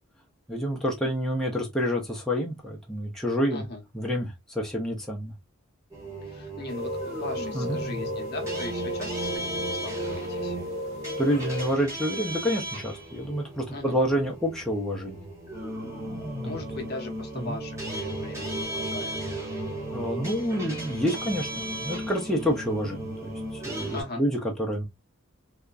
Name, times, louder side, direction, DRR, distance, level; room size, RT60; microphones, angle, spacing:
voice 1, 0.5-3.6 3.9-5.3 7.5-7.8 11.2-15.2 17.3-17.6 19.9-24.9, equal, ahead, 0.6 m, -28 dB
voice 2, 3.5-3.8 6.2-10.6 13.7-14.0 16.4-19.2 23.9-24.2, left 2 dB, 50° left, 0.8 m, -39 dB
sound 1, 5.9-24.0, right 1 dB, 15° right, 1.1 m, -35 dB
sound 2, 6.7-11.7, left 1 dB, 75° right, 1.0 m, -34 dB
2.8 x 2.3 x 2.3 m
head